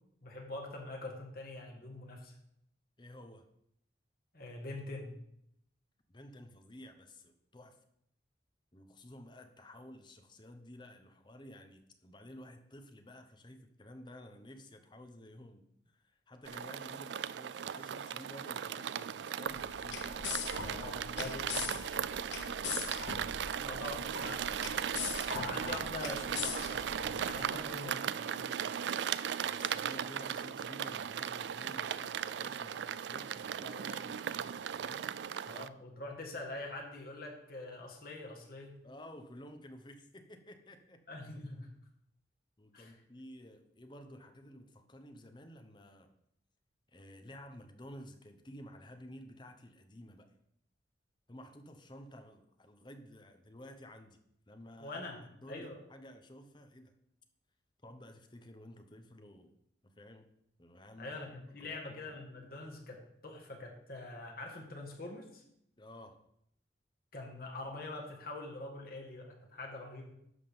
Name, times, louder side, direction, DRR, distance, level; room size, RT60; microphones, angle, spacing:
voice 1, 0.2-2.3 4.3-5.2 20.6-21.6 23.7-24.0 24.2-24.4 25.3-28.1 35.5-38.8 41.1-41.7 42.7-43.0 54.8-55.2 55.5-55.8 61.0-65.4 67.1-70.1, left 2 dB, 50° left, 1 dB, 1.8 m, -44 dB
voice 2, 3.0-3.5 6.1-7.8 8.7-20.1 21.1-21.9 23.3-23.8 24.2-24.5 28.0-29.0 29.4-35.1 38.8-41.0 42.6-46.1 46.9-50.3 51.3-54.2 54.5-55.0 55.3-57.0 57.8-59.5 59.8-60.3 60.6-61.2 61.6-62.2 65.8-66.2, left 1 dB, 25° left, 6 dB, 0.9 m, -53 dB
sound 1, 16.4-35.7, right 8 dB, 70° right, 0.3 m, -37 dB
sound 2, 19.4-27.6, left 7 dB, 75° left, 0.8 m, -41 dB
11.0 x 3.8 x 7.0 m, 0.76 s
head